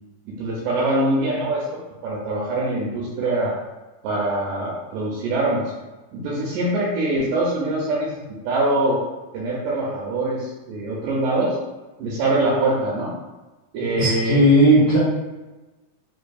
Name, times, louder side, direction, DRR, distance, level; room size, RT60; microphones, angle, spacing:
voice 1, 0.3-1.7 2.0-3.5 4.0-5.7 6.1-9.0 9.3-11.6 12.0-13.1 13.7-14.4, right 2 dB, 85° right, -4 dB, 2.1 m, -23 dB
voice 2, 14.0-15.0, equal, 40° left, -12 dB, 1.6 m, -15 dB
4.9 x 2.6 x 2.3 m, 1.1 s
omnidirectional pair, 3.6 m